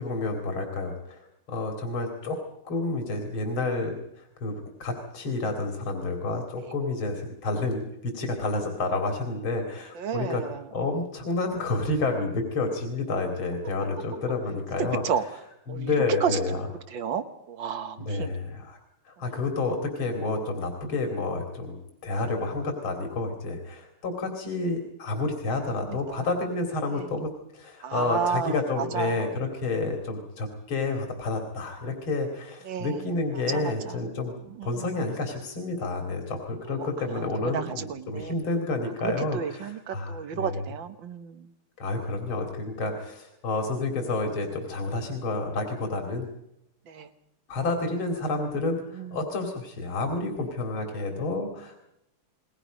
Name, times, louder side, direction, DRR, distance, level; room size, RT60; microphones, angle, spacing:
voice 1, 0.0-2.4 2.7-10.4 10.7-15.0 15.7-16.7 18.0-18.8 19.1-21.8 22.0-27.3 27.5-34.3 34.6-40.6 41.8-46.3 47.5-51.7, left 3 dB, 75° left, 3 dB, 3.5 m, -30 dB
voice 2, 10.0-10.6 15.0-15.2 15.7-16.4 16.9-18.3 19.3-19.4 25.9-26.3 26.9-27.1 27.8-29.3 32.7-33.1 33.5-34.0 34.6-35.0 36.8-36.9 37.1-38.3 39.0-41.5 46.9-47.1 48.9-49.2 51.1-51.2, right 7 dB, 65° right, 9 dB, 1.9 m, -32 dB
28.5 x 21.5 x 5.2 m, 0.81 s
omnidirectional pair, 2.3 m